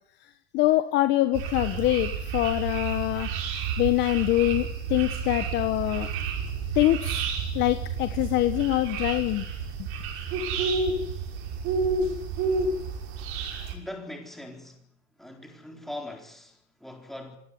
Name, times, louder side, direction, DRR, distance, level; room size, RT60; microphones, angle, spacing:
voice 1, 0.2-3.3 3.8-6.1 6.7-7.2 7.5-9.4, left 16 dB, 30° left, 1.4 m, -24 dB
sound 1, 1.3-13.7, right 4 dB, 35° right, 6.2 m, -30 dB
voice 2, 13.7-14.9 15.1-17.4, left 1 dB, ahead, 4.1 m, -41 dB
25.0 x 18.5 x 9.8 m
supercardioid pair, 155°, 36 cm